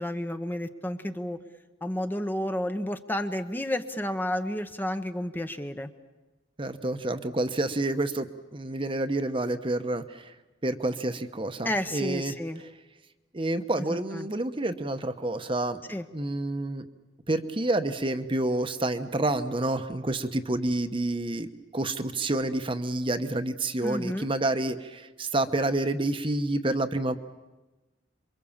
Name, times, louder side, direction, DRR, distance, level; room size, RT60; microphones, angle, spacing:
voice 1, 0.0-1.4 1.8-5.9 11.6-12.6 13.9-14.3 15.9-16.0 23.8-24.3, left 1 dB, 10° left, 8 dB, 0.9 m, -31 dB
voice 2, 6.6-8.3 8.5-10.3 10.6-12.3 13.3-15.8 16.1-16.8 17.3-27.2, right 2 dB, 30° right, 9 dB, 1.0 m, -28 dB
27.5 x 23.5 x 7.2 m, 1.1 s
head